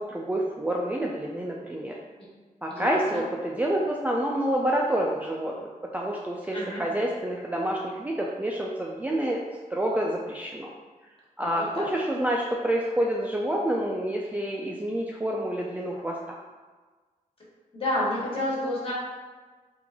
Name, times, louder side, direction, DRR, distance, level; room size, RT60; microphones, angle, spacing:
voice 1, 0.0-2.0 2.6-5.6 5.9-9.4 9.7-10.7 11.4-16.4, right 1 dB, 10° right, -2 dB, 0.3 m, -28 dB
voice 2, 2.7-3.2 6.5-6.8 11.4-11.8 17.7-18.9, left 1 dB, 35° left, -6 dB, 1.3 m, -30 dB
3.2 x 2.5 x 3.5 m, 1.4 s
wide cardioid pair, 90°, 15 cm